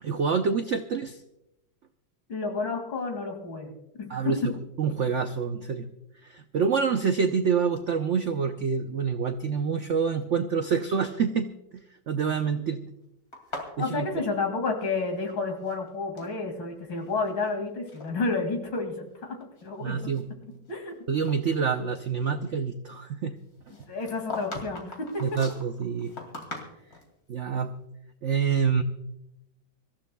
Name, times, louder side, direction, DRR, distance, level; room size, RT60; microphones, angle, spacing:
voice 1, 0.0-1.2 4.1-5.9 6.2-11.5 11.7-12.8 13.8-14.1 19.8-20.3 21.1-23.4 25.2-26.1 27.3-27.8 28.2-28.8, right 6 dB, 90° right, 7 dB, 0.6 m, -27 dB
voice 2, 2.3-3.7 4.0-4.5 13.8-20.1 20.7-21.0 23.9-25.2, left 3 dB, 70° left, 4 dB, 3.1 m, -30 dB
sound 1, 13.3-15.3 15.6-16.4 17.0-17.5 17.9-18.1 18.8-18.9 19.4-20.9 21.2-21.4 23.7-27.1, left 2 dB, 45° left, 2.9 m, -41 dB
25.5 x 14.5 x 2.3 m, 0.86 s
omnidirectional pair, 2.2 m